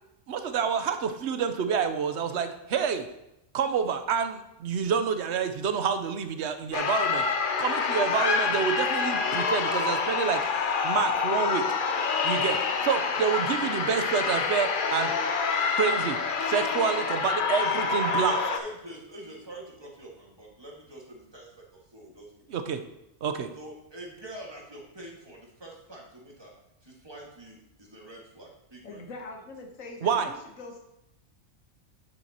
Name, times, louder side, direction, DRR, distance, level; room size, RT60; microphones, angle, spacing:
voice 1, 0.3-3.1 3.5-7.3 7.6-10.4 10.8-11.6 12.2-12.6 12.8-15.1 15.8-18.4 22.5-22.8 23.2-23.5 30.0-30.3, right 7 dB, 65° right, 8 dB, 1.0 m, -28 dB
sound 1, 6.7-18.6, left 5 dB, 50° left, 0.7 m, -27 dB
voice 2, 18.3-22.3 22.5-22.6 23.5-26.5 26.8-29.0, right 1 dB, 20° right, -3 dB, 1.8 m, -45 dB
voice 3, 28.8-30.8, left 2 dB, 90° left, 3 dB, 1.4 m, -43 dB
9.2 x 7.7 x 2.9 m, 0.86 s
omnidirectional pair, 1.3 m